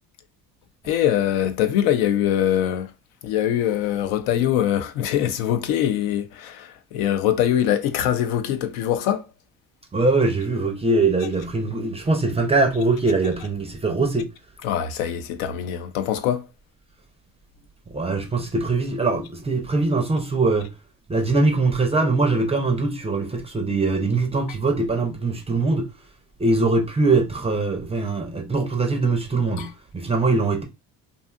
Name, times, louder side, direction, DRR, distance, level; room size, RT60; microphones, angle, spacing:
voice 1, 0.9-2.9 3.2-9.3 14.6-16.5 29.6-29.7, left 10 dB, 70° left, 0.5 m, -23 dB
voice 2, 9.9-14.3 17.9-20.7 21.1-25.9 26.4-30.6, right 3 dB, 15° right, 0.4 m, -22 dB
2.6 x 2.4 x 2.3 m
hypercardioid pair, 65°, 45 cm